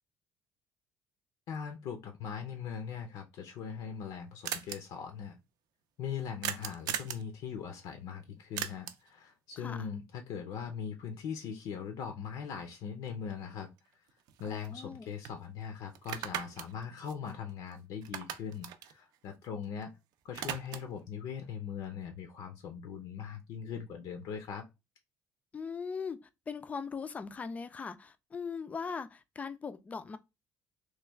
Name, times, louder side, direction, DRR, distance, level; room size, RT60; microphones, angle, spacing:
voice 1, 1.5-5.4 6.0-13.7 14.4-19.9 20.2-24.6, left 7 dB, 70° left, 0.6 m, -40 dB
sound 1, 3.5-3.6 3.8-3.9 4.1-4.2 4.4-4.8 6.4-7.3 8.6-9.1 13.3-13.4 13.8-14.9 15.2-15.4 15.9-17.7 18.0-19.8 20.1-21.0, right 10 dB, 75° right, 0.4 m, -39 dB
voice 2, 9.6-9.9 14.4-15.1 25.5-26.2 26.5-30.2, left 5 dB, 20° left, 0.3 m, -40 dB
3.1 x 2.3 x 3.3 m
cardioid pair, 145°, 7 cm